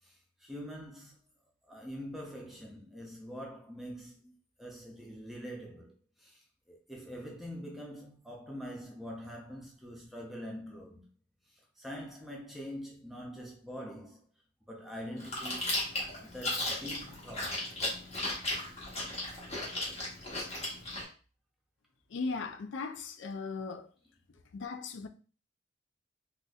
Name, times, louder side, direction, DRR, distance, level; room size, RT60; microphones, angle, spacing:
voice 1, 0.0-1.2 1.6-11.1 11.5-14.3 14.7-15.8 16.2-17.7, equal, ahead, 0.6 m, -44 dB
Chewing mastication, 15.2-21.0, left 2 dB, 35° left, 1.2 m, -36 dB
voice 2, 22.1-23.9 24.5-25.1, left 4 dB, 85° left, 0.4 m, -37 dB
4.0 x 2.4 x 2.4 m
head